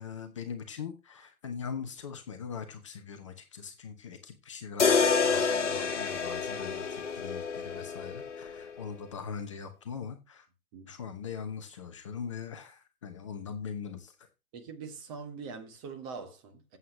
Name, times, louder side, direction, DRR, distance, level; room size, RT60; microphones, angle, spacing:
voice 1, 0.0-10.5 10.9-14.1, left 6 dB, 20° left, 0.9 m, -41 dB
sound 1, 4.8-8.9, left 5 dB, 55° left, 1.6 m, -28 dB
voice 2, 14.5-16.8, right 5 dB, 15° right, 1.2 m, -43 dB
14.5 x 8.1 x 3.1 m
figure-of-eight pair, 135°, 44 cm